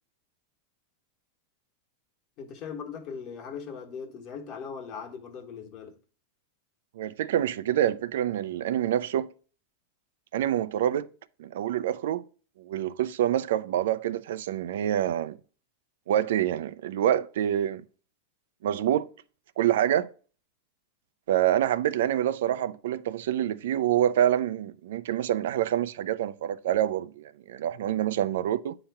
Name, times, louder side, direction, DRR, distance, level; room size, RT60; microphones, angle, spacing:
voice 1, 2.4-5.9, left 6 dB, 35° left, 1.3 m, -39 dB
voice 2, 7.0-9.3 10.3-11.1 11.4-12.2 12.6-15.4 16.1-17.8 18.6-19.1 19.6-20.1 21.3-28.7, right 11 dB, 75° right, 0.4 m, -26 dB
8.8 x 2.9 x 5.7 m
supercardioid pair, 165°, 0 cm